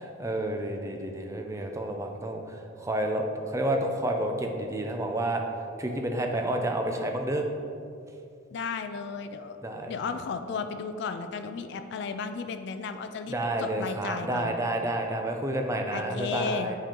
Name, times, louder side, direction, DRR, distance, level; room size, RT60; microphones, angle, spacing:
voice 1, 0.0-5.4 5.8-7.5 9.6-9.9 13.3-16.8, right 1 dB, 15° right, 3 dB, 0.5 m, -30 dB
voice 2, 8.5-9.6 9.9-14.5 15.9-16.8, left 5 dB, 60° left, 8 dB, 0.3 m, -34 dB
7.4 x 4.3 x 3.7 m, 2.5 s
head